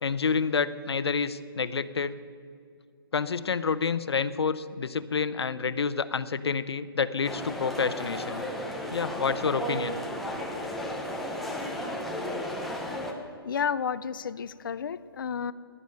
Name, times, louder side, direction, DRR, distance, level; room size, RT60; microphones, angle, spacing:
voice 1, 0.0-2.1 3.1-8.4 8.9-10.0, left 5 dB, 90° left, 15 dB, 0.8 m, -28 dB
sound 1, 7.2-13.1, equal, ahead, 0.6 m, -34 dB
voice 2, 13.4-15.5, left 7 dB, 55° left, 13 dB, 0.5 m, -31 dB
16.0 x 11.0 x 6.4 m, 2.4 s
hypercardioid pair, 170°, 13 cm